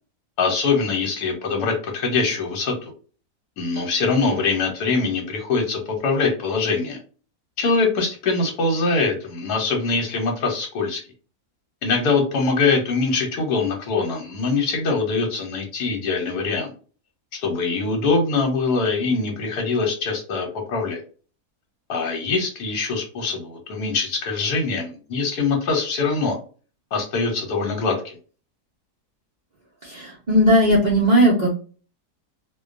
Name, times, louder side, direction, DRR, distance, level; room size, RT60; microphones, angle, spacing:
voice 1, 0.4-2.9 3.6-7.0 7.6-11.0 11.8-16.7 17.3-21.0 21.9-26.4 26.9-28.1, left 4 dB, 85° left, 1 dB, 1.2 m, -23 dB
voice 2, 29.8-31.5, equal, 80° right, -5 dB, 0.3 m, -17 dB
2.5 x 2.2 x 2.4 m, 0.39 s
omnidirectional pair, 1.7 m